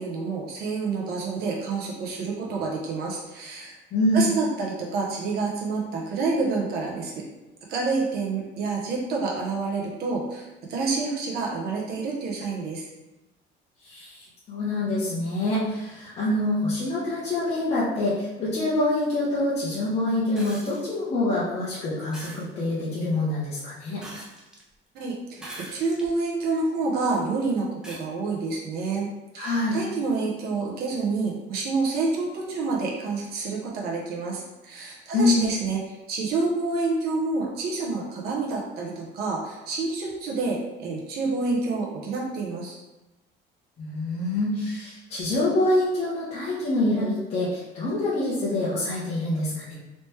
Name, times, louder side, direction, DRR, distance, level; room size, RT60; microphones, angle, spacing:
voice 1, 0.0-3.8 4.1-7.2 7.7-12.9 24.9-29.1 29.3-35.8 36.1-42.8, right 3 dB, 50° right, -2 dB, 0.8 m, -28 dB
voice 2, 3.9-4.2 13.8-24.0 29.4-29.8 35.1-35.5 43.8-49.7, left 1 dB, 30° left, -10 dB, 0.8 m, -26 dB
sound 1, 20.3-20.8 22.1-22.4 24.0-24.6 25.4-26.1 26.8-26.9 27.8-28.0 29.5-29.6, right 1 dB, 5° right, 0.4 m, -41 dB
3.2 x 2.9 x 3.2 m, 1.0 s
cardioid pair, 180°, 20 cm